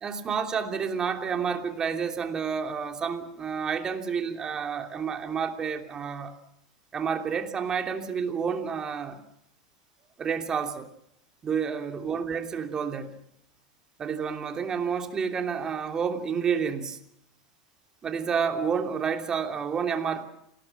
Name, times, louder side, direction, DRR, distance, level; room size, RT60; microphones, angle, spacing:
voice 1, 0.0-6.3 6.9-9.2 10.2-10.9 11.4-13.2 14.0-17.0 18.0-20.2, right 6 dB, 25° right, 3.0 m, -29 dB
27.5 x 19.5 x 5.9 m
hypercardioid pair, 110°, 3 cm